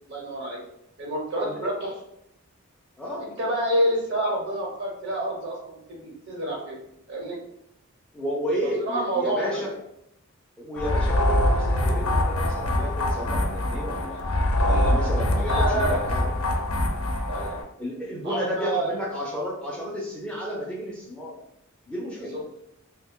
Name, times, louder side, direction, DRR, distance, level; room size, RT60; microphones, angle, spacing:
voice 1, 0.1-0.6 1.0-1.9 3.2-6.8 7.1-7.4 8.6-9.6 15.4-16.0 17.3-17.6 18.2-18.9 22.3-22.4, right 1 dB, 55° right, -2 dB, 1.1 m, -28 dB
voice 2, 8.1-9.7 10.6-14.2 14.6-16.3 17.8-21.3 21.9-22.4, equal, 5° left, -4 dB, 0.5 m, -32 dB
sound 1, 10.8-17.6, left 1 dB, 75° left, 0.5 m, -24 dB
3.0 x 2.2 x 3.6 m, 0.79 s
head